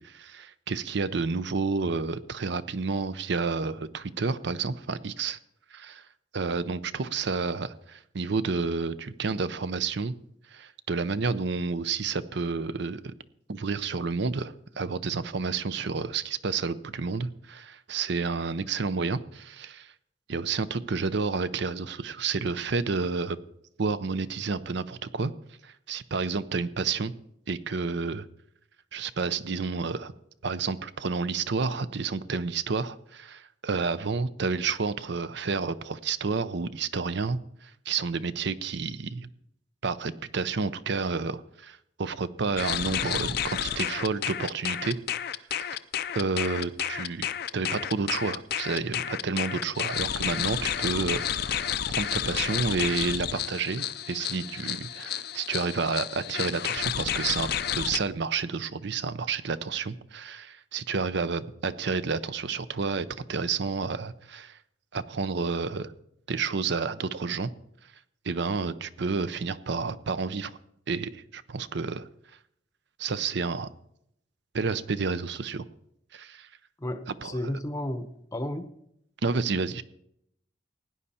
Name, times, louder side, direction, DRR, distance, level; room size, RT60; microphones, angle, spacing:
voice 1, 0.0-5.4 5.7-6.0 6.3-10.1 10.5-13.1 13.5-19.9 20.3-23.4 23.8-25.3 25.6-27.1 27.5-28.3 28.9-30.1 30.4-39.3 39.8-45.0 45.6-45.8 46.1-47.3 47.5-51.6 51.9-57.5 57.7-64.6 64.9-65.9 66.3-67.5 68.2-70.5 70.9-72.1 73.0-73.7 74.5-75.6 76.1-76.5 77.2-77.4 79.2-79.8, right 4 dB, 60° right, 15 dB, 0.6 m, -30 dB
sound 1, 42.6-58.0, left 10 dB, 50° left, 0.5 m, -31 dB
voice 2, 76.8-78.7, left 1 dB, 15° left, 9 dB, 0.8 m, -33 dB
16.5 x 9.7 x 4.3 m, 0.75 s
head